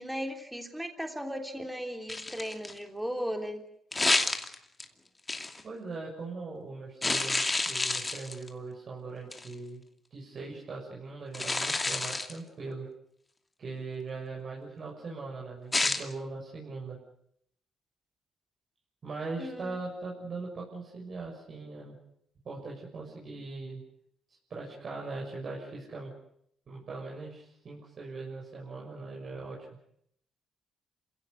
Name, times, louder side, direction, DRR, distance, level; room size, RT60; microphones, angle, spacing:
voice 1, 0.0-3.6 19.4-19.8, equal, 5° right, 4 dB, 3.6 m, -36 dB
sound 1, 2.1-2.8 3.9-4.8 5.3-5.6 7.0-8.5 9.3-9.5 11.3-12.4 15.7-16.0, left 2 dB, 20° left, 2.6 m, -29 dB
voice 2, 5.6-9.8 10.1-12.9 13.6-17.0 19.0-21.9 22.4-23.8 24.3-26.1 26.7-29.6, right 3 dB, 50° right, -2 dB, 6.6 m, -40 dB
28.0 x 17.0 x 8.2 m, 0.72 s
cardioid pair, 80°, 0 cm